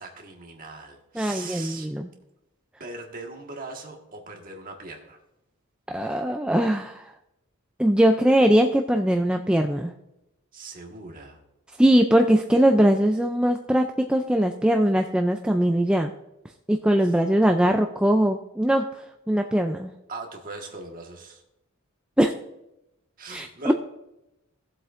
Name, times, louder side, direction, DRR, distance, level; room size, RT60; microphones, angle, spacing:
voice 1, 0.0-1.9 2.8-5.2 10.5-11.4 20.1-21.4 23.2-23.7, right 3 dB, 40° right, 2 dB, 1.5 m, -39 dB
voice 2, 1.2-2.1 5.9-7.0 7.8-9.9 11.8-16.1 16.7-18.9 19.3-19.9 22.2-22.3 23.3-23.7, right 1 dB, 5° right, 4 dB, 0.3 m, -21 dB
16.5 x 7.7 x 2.5 m, 0.89 s
head